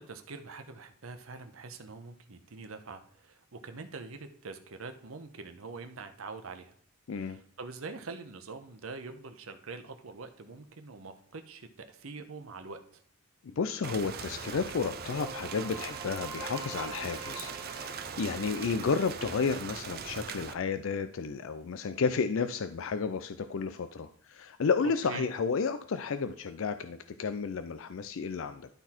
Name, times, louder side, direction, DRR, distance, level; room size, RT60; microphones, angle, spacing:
voice 1, 0.0-6.7 7.1-13.0 24.8-25.3, right 4 dB, 75° right, 7 dB, 0.9 m, -44 dB
voice 2, 13.4-28.7, left 5 dB, 65° left, 9 dB, 0.4 m, -32 dB
Rain, 13.8-20.5, right 6 dB, 45° right, 0.6 m, -41 dB
sound 1, 14.0-19.7, right 3 dB, 15° right, 1.5 m, -47 dB
12.0 x 4.0 x 4.4 m, 0.64 s
head